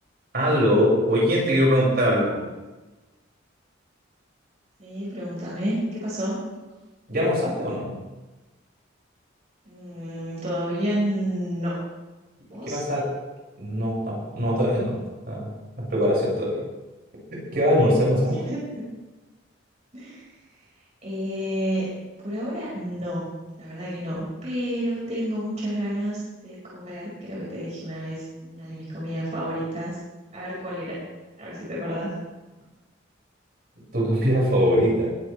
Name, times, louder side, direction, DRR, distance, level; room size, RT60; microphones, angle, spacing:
voice 1, 0.3-2.4 7.1-8.0 12.7-13.1 13.6-15.0 15.3-16.6 17.3-18.3 33.9-35.1, equal, 55° right, -4 dB, 6.1 m, -22 dB
voice 2, 4.8-6.4 9.7-11.9 12.5-12.8 18.1-18.6 19.9-20.3 21.0-21.9 22.2-23.3 23.6-30.0 30.3-31.0 31.4-32.1, equal, 35° right, -7 dB, 5.4 m, -30 dB
21.0 x 12.5 x 3.4 m, 1.2 s
head